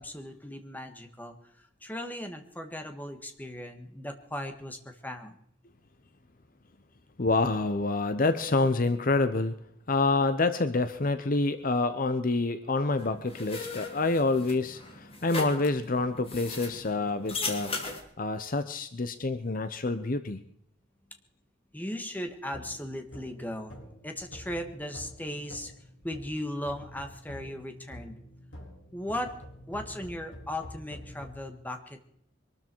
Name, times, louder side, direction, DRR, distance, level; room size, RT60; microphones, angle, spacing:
voice 1, 0.0-1.3 1.8-5.4 21.7-23.8 24.0-25.7 26.0-28.2 28.9-29.4 29.7-32.0, left 1 dB, 10° left, 6 dB, 1.7 m, -37 dB
voice 2, 7.2-9.5 9.9-17.7 18.2-20.4, left 3 dB, 45° left, 11 dB, 0.8 m, -27 dB
sound 1, 13.0-18.0, left 3 dB, 30° left, 2.7 m, -38 dB
sound 2, 22.5-26.4 26.7-31.3, left 1 dB, 65° left, 4.9 m, -47 dB
23.0 x 13.0 x 4.6 m, 0.71 s
head